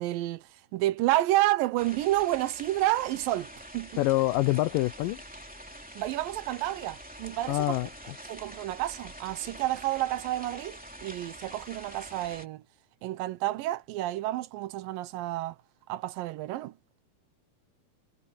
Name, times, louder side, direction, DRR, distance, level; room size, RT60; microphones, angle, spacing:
voice 1, 0.0-4.0 6.0-7.8 8.3-12.6 13.0-15.6 15.9-16.7, right 16 dB, 75° right, 2.2 m, -30 dB
sound 1, 1.8-12.5, equal, 5° right, 2.2 m, -46 dB
voice 2, 4.0-5.2 7.5-7.9, left 17 dB, 80° left, 2.1 m, -25 dB
omnidirectional pair, 4.5 m